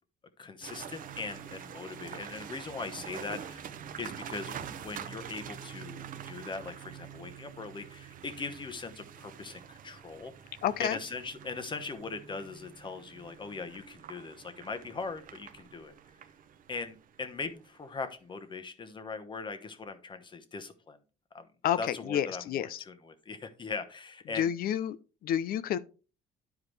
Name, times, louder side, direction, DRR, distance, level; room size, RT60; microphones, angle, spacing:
voice 1, 0.4-3.7 4.0-10.3 10.8-15.9 16.7-21.0 21.3-21.5 21.8-24.5, left 4 dB, 30° left, 1.1 m, -40 dB
sound 1, 0.6-17.8, right 8 dB, 55° right, 0.7 m, -46 dB
voice 2, 10.6-11.0 21.6-21.8 22.1-22.8 24.4-25.0 25.2-25.8, left 10 dB, 60° left, 0.6 m, -29 dB
11.0 x 4.8 x 3.3 m
cardioid pair, 110°, 17 cm